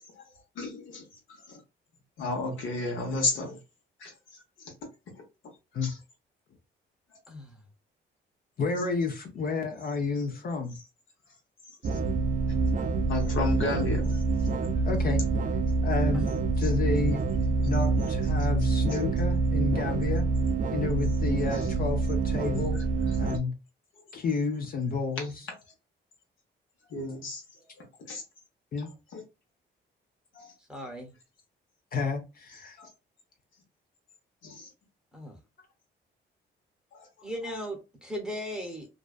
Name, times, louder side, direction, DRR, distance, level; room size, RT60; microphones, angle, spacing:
voice 1, 0.6-1.0 1.5-1.6 2.2-3.6 4.0-4.1 5.8-6.0 11.9-12.0 13.1-14.5 25.2-25.3 26.9-27.4 28.1-28.2 29.1-29.2 30.3-30.5 32.8-32.9 34.4-34.7 36.9-37.1, left 2 dB, 75° left, 1.0 m, -32 dB
voice 2, 7.3-7.6 30.6-31.1 35.1-35.4 37.2-38.9, equal, 5° right, 0.7 m, -37 dB
voice 3, 8.6-10.8 14.8-15.2 15.8-17.2 17.7-20.3 20.7-22.8 23.2-23.5 24.1-25.5 28.7-28.9 31.9-32.8, left 4 dB, 45° left, 0.5 m, -30 dB
sound 1, 11.8-23.4, right 3 dB, 40° right, 0.4 m, -26 dB
2.6 x 2.1 x 2.3 m
cardioid pair, 90°, 20 cm